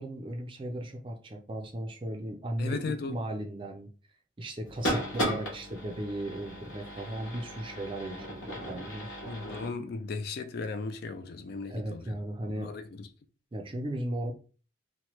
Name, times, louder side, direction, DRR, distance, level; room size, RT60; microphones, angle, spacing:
voice 1, 0.0-3.9 4.4-9.1 11.7-12.7 13.5-14.3, right 1 dB, 25° right, 0.4 m, -36 dB
voice 2, 2.6-3.2 9.3-12.2 12.5-13.1, left 3 dB, 50° left, 0.3 m, -36 dB
sound 1, 4.7-9.7, equal, 80° left, 1.1 m, -36 dB
2.9 x 2.1 x 3.0 m
head